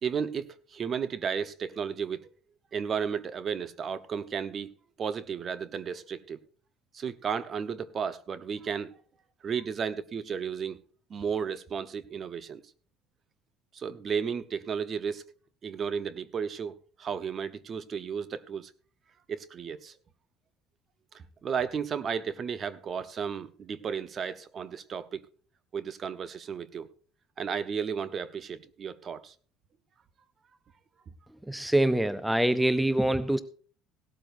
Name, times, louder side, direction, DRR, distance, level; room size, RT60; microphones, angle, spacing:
voice 1, 0.0-2.3 2.7-4.7 5.0-6.4 6.9-8.9 9.4-10.8 11.1-12.6 13.7-15.2 15.6-18.7 19.3-19.9 21.1-25.2 25.7-26.9 27.4-29.3, right 6 dB, 35° right, 0.9 m, -33 dB
voice 2, 31.5-33.4, right 1 dB, 5° right, 0.5 m, -25 dB
17.5 x 12.5 x 2.6 m
cardioid pair, 120°, 0 cm